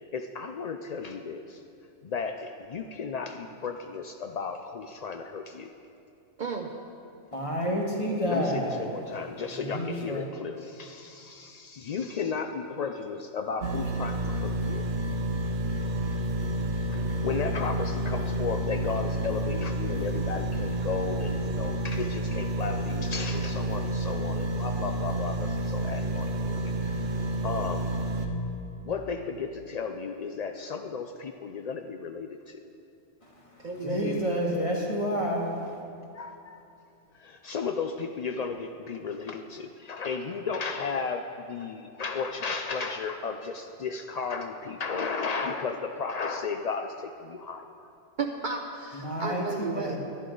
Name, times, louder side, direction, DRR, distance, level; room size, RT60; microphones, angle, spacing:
voice 1, 0.1-1.6 2.0-5.7 8.3-14.8 17.2-26.5 27.4-27.9 28.8-32.6 36.2-36.6 37.2-47.6, left 5 dB, 80° left, 6 dB, 0.3 m, -34 dB
voice 2, 6.4-6.7 33.6-34.2 48.2-50.0, right 4 dB, 50° right, 3 dB, 0.6 m, -33 dB
voice 3, 7.3-8.8 9.5-10.3 33.2-35.8 48.9-50.0, equal, 25° left, -1 dB, 1.5 m, -30 dB
sound 1, 13.6-28.3, right 1 dB, 90° right, 1.2 m, -30 dB
11.5 x 11.0 x 3.8 m, 2.6 s
omnidirectional pair, 1.3 m